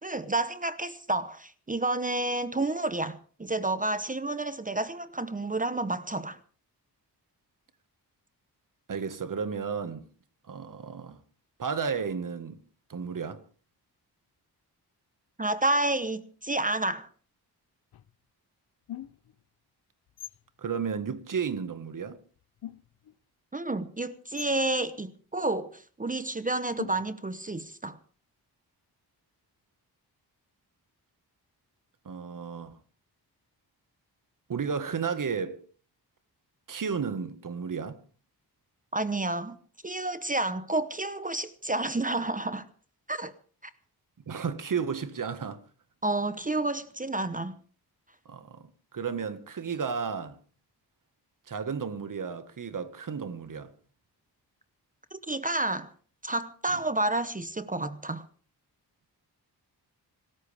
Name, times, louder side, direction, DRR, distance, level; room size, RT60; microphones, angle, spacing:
voice 1, 0.0-6.4 15.4-17.1 23.5-28.0 38.9-39.6 39.8-42.7 43.1-43.3 43.6-43.7 46.0-47.5 55.1-55.9 56.2-58.2, right 2 dB, 20° right, 0.9 m, -30 dB
voice 2, 8.9-10.0 10.5-11.2 11.6-12.6 12.9-13.4 20.6-22.2 32.0-32.8 34.5-35.6 36.7-38.0 44.3-45.6 48.2-50.4 51.5-53.7 56.7-56.8, right 6 dB, 50° right, 1.7 m, -33 dB
sound 1, 17.9-18.1 18.9-19.4 20.1-20.5 22.1-22.2 22.4-23.2 24.4-24.7 26.8-27.3, left 12 dB, 65° left, 0.7 m, -43 dB
26.0 x 14.0 x 3.5 m
wide cardioid pair, 120°, 40 cm